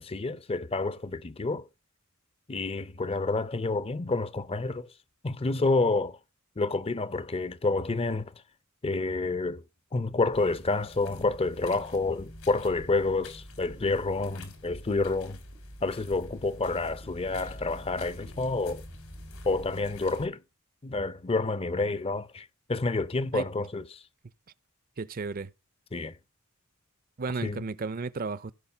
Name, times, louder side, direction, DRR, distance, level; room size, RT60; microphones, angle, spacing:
voice 1, 0.0-1.7 2.5-4.9 5.2-6.2 6.6-8.3 8.8-9.6 9.9-15.4 15.8-18.8 19.4-20.4 20.8-24.0 25.9-26.2 27.4-27.6, left 3 dB, 25° left, 0.6 m, -29 dB
sound 1, 10.3-20.3, left 1 dB, 80° left, 3.4 m, -45 dB
voice 2, 25.0-25.5 27.2-28.5, right 4 dB, 40° right, 0.6 m, -33 dB
16.0 x 5.6 x 5.6 m
head